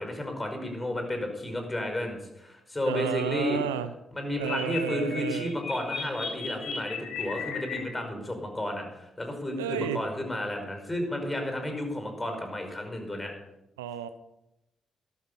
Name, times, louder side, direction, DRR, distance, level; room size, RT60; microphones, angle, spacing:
voice 1, 0.0-3.6 4.1-13.3, left 1 dB, 25° left, 4 dB, 5.3 m, -32 dB
voice 2, 2.8-3.9 4.4-5.5 9.6-10.0 13.8-14.1, right 10 dB, 90° right, 12 dB, 0.6 m, -32 dB
sound 1, 4.3-7.8, left 6 dB, 65° left, 5.0 m, -36 dB
13.0 x 12.0 x 5.5 m, 0.90 s
hypercardioid pair, 45°, 0 cm